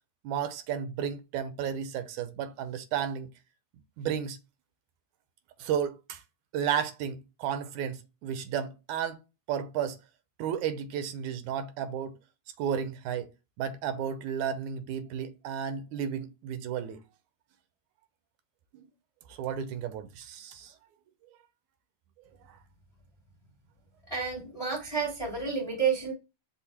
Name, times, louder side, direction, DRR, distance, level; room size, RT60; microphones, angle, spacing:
voice 1, 0.2-3.3 4.0-4.4 5.6-6.2 6.5-9.2 9.5-10.0 10.4-12.2 12.6-13.3 13.6-17.0 18.7-18.9 19.3-20.7 22.5-22.6, right 8 dB, 80° right, 2.0 m, -33 dB
voice 2, 24.1-26.1, right 6 dB, 40° left, 0.5 m, -30 dB
5.5 x 2.1 x 4.3 m
omnidirectional pair, 3.4 m